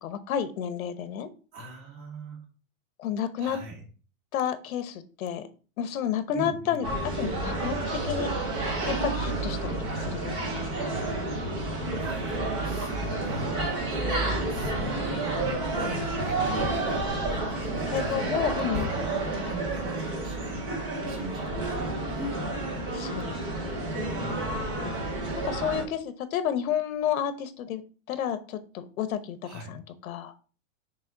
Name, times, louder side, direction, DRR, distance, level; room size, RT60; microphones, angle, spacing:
voice 1, 0.0-1.3 3.0-3.6 4.3-5.5 5.8-6.9 7.1-8.3 8.9-11.0 17.9-18.9 22.9-23.5 25.4-27.8 28.1-30.3, left 9 dB, 80° left, 11 dB, 1.0 m, -31 dB
voice 2, 1.5-2.4 3.4-3.8 6.3-6.8 12.0-17.0 17.3-18.4 18.7-18.9 19.3-20.7 21.1-22.5 24.2-24.6 29.4-29.7, right 3 dB, 40° right, -3 dB, 3.0 m, -41 dB
sound 1, 6.8-25.8, right 2 dB, 10° right, 0.5 m, -30 dB
6.5 x 3.5 x 4.5 m, 0.38 s
supercardioid pair, 170°, 42 cm